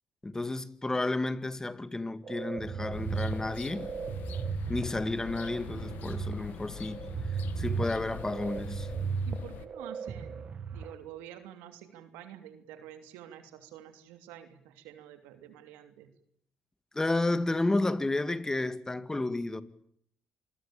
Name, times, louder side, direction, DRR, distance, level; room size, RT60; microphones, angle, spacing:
voice 1, 0.2-3.9 4.3-4.4 4.7-8.9 16.9-19.6, left 2 dB, 20° left, 2.0 m, -32 dB
sound 1, 2.2-10.9, right 5 dB, 50° right, 2.3 m, -35 dB
sound 2, 2.9-9.7, left 10 dB, 75° left, 1.6 m, -44 dB
voice 2, 9.2-10.5 10.7-16.1, right 11 dB, 90° right, 2.9 m, -48 dB
27.0 x 21.0 x 8.8 m
supercardioid pair, 70°, 3 cm